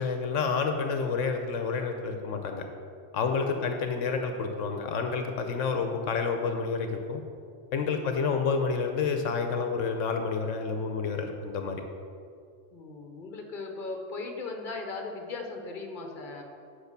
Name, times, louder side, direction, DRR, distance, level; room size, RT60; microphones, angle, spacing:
voice 1, 0.0-2.6 3.1-7.2 7.7-11.8, left 5 dB, 80° left, 5 dB, 1.1 m, -29 dB
voice 2, 3.3-3.7 7.8-8.2 12.7-16.4, left 3 dB, 45° left, 3 dB, 1.2 m, -39 dB
8.1 x 5.8 x 6.7 m, 2.4 s
omnidirectional pair, 1.3 m